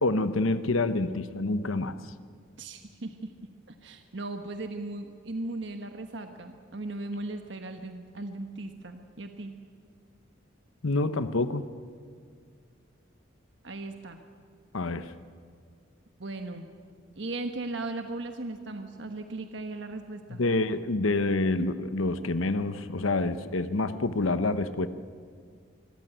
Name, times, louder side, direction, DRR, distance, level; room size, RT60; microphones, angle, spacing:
voice 1, 0.0-1.9 10.8-11.6 14.7-15.1 20.4-24.9, left 2 dB, 85° left, 11 dB, 1.0 m, -27 dB
voice 2, 2.6-3.3 3.7-9.5 13.6-14.2 16.2-16.7 17.2-20.4, right 2 dB, 65° right, 6 dB, 1.2 m, -37 dB
25.0 x 15.0 x 9.2 m, 2.1 s
head